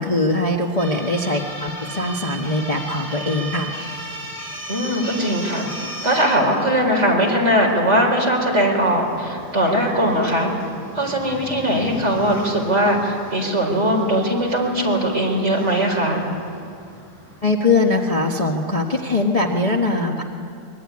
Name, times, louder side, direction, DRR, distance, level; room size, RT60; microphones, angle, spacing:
voice 1, 0.0-3.7 17.4-20.2, left 2 dB, 25° left, 0 dB, 1.3 m, -21 dB
sound 1, 0.8-17.4, right 1 dB, 5° left, 6.7 m, -37 dB
voice 2, 4.7-5.6 6.0-10.5 10.9-16.2, equal, 40° right, 0 dB, 4.9 m, -20 dB
24.5 x 21.5 x 9.7 m, 2.4 s
omnidirectional pair, 1.7 m